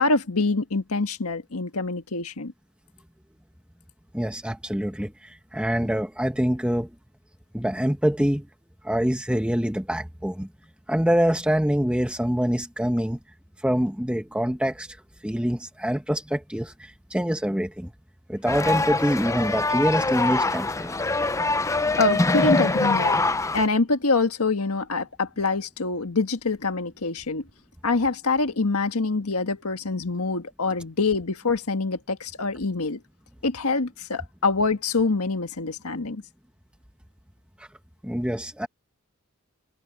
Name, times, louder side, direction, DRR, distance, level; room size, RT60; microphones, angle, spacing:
voice 1, 0.0-2.5 22.0-23.2 23.5-27.4 27.8-33.0 33.4-36.2, left 3 dB, 90° left, 1.5 m, -25 dB
voice 2, 4.1-6.9 7.5-8.5 8.8-10.5 10.9-13.2 13.6-15.0 15.2-17.9 18.3-21.0 37.6-37.7 38.0-38.7, equal, 5° right, 1.1 m, -25 dB
sound 1, 18.5-23.7, left 3 dB, 15° left, 0.5 m, -24 dB
head